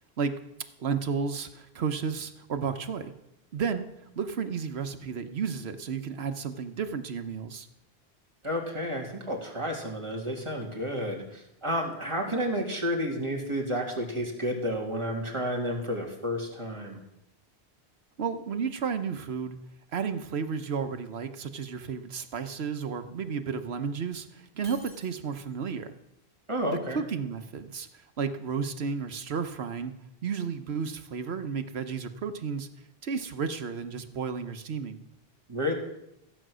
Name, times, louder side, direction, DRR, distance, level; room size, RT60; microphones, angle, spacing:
voice 1, 0.8-3.1 3.5-3.9 4.1-7.7 18.2-19.6 19.9-25.9 26.7-29.9 30.2-32.7 33.0-35.0, right 6 dB, 85° right, 9 dB, 1.2 m, -32 dB
voice 2, 8.4-17.0 26.5-27.0 35.5-35.7, equal, 30° right, -1 dB, 2.4 m, -31 dB
Shatter, 24.6-25.7, right 3 dB, 50° right, 2.8 m, -50 dB
15.0 x 9.0 x 6.2 m, 0.87 s
omnidirectional pair, 1.0 m